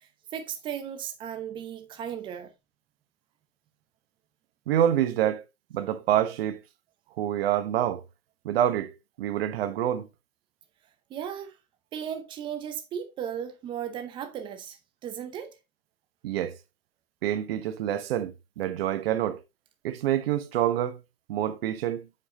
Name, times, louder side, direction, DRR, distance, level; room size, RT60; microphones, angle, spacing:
voice 1, 0.3-2.5 11.1-11.6 11.9-15.6, right 9 dB, 10° right, 0.8 m, -36 dB
voice 2, 4.7-5.4 5.7-6.6 7.2-8.0 8.4-10.1 16.2-16.5 17.2-19.4 19.8-21.0 21.3-22.1, right 11 dB, 45° right, 1.2 m, -27 dB
7.7 x 4.8 x 3.7 m
hypercardioid pair, 145°, 43 cm